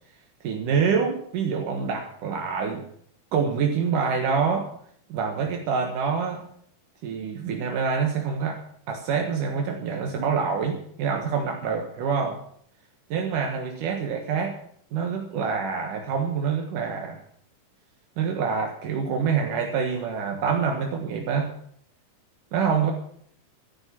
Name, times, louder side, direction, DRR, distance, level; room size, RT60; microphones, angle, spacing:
voice 1, 0.4-2.8 3.3-4.7 5.1-6.4 7.0-8.6 8.9-12.4 13.1-14.6 14.9-17.2 18.2-21.5 22.5-22.9, right 6 dB, 75° right, 2 dB, 3.1 m, -26 dB
13.5 x 11.0 x 7.5 m, 0.63 s
omnidirectional pair, 3.8 m